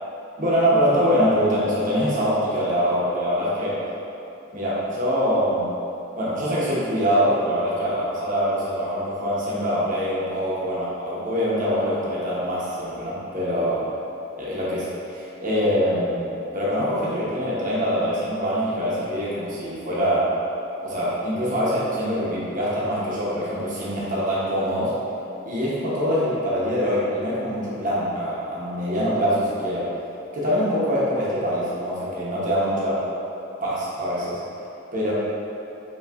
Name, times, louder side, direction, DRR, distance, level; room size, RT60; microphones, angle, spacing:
voice 1, 0.4-3.8 4.5-5.8 6.1-13.9 14.4-20.3 20.8-24.9 25.4-29.9 30.3-33.0 33.6-34.4 34.9-35.1, equal, 45° right, -8 dB, 1.0 m, -24 dB
5.4 x 3.0 x 2.5 m, 2.8 s
head